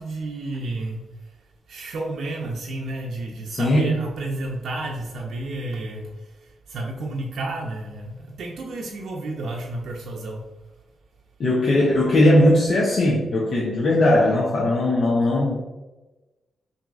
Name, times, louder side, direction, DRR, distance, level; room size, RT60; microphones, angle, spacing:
voice 1, 0.0-1.4 1.7-10.5, right 2 dB, 75° right, -1 dB, 0.5 m, -31 dB
voice 2, 3.5-3.9 11.4-15.5, left 1 dB, 55° left, -3 dB, 0.7 m, -19 dB
5.8 x 2.7 x 2.4 m, 1.1 s
wide cardioid pair, 125°, 0 cm